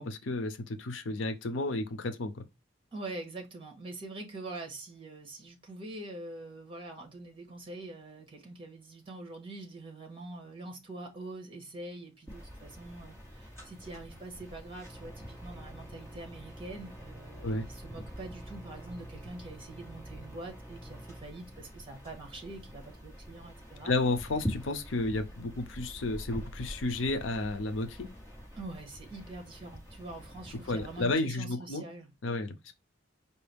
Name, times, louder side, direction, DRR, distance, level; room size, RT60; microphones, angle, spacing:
voice 1, 0.0-2.4 17.4-17.7 23.8-28.1 30.7-31.8 32.2-32.7, left 2 dB, 85° left, 0.6 m, -32 dB
voice 2, 2.9-24.0 28.5-32.1, right 2 dB, 30° right, 1.5 m, -44 dB
sound 1, 12.3-31.1, equal, 15° left, 1.8 m, -45 dB
4.6 x 2.7 x 3.4 m
head